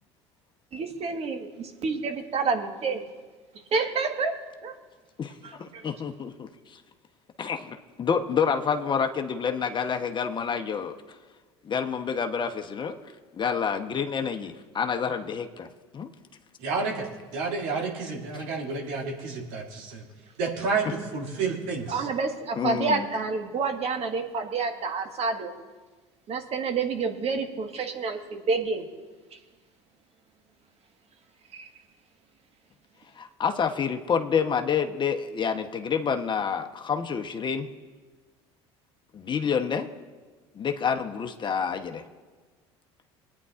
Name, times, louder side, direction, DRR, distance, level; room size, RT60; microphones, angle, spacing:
voice 1, 0.7-3.0 3.7-4.3 4.6-4.7 5.4-5.9 21.9-25.5 26.3-28.8 31.5-31.6, right 4 dB, 45° right, 4 dB, 1.6 m, -28 dB
voice 2, 5.2-6.8 7.4-10.9 11.6-12.9 13.4-15.7 15.9-16.1 18.3-18.4 22.6-23.1 33.2-37.7 39.1-39.9 40.5-42.0, left 6 dB, 35° left, 5 dB, 1.0 m, -28 dB
voice 3, 16.6-17.1 17.3-20.0 20.4-22.1, right 4 dB, 65° right, -1 dB, 2.5 m, -30 dB
23.5 x 9.6 x 2.5 m, 1.4 s
hypercardioid pair, 70°, 14 cm